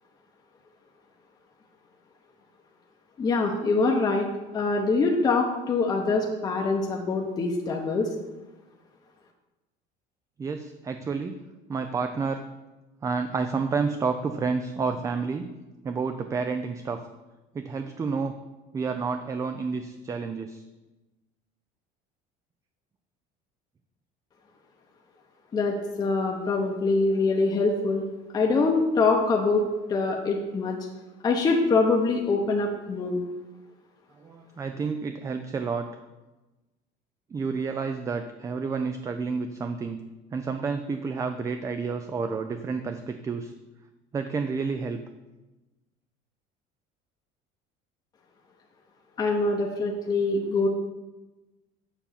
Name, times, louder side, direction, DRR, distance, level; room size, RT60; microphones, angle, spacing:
voice 1, 3.2-4.3 4.5-8.1 25.5-28.0 28.3-29.6 29.9-30.8 31.2-33.2 49.2-50.7, left 3 dB, 20° left, 0 dB, 0.8 m, -24 dB
voice 2, 10.4-11.3 11.7-12.4 13.0-15.5 15.8-17.0 17.5-18.3 18.7-20.6 34.2-35.9 37.3-40.0 40.3-43.5 44.1-45.0, right 5 dB, 20° right, 7 dB, 0.4 m, -30 dB
7.1 x 5.4 x 7.3 m, 1.1 s
cardioid pair, 155°, 18 cm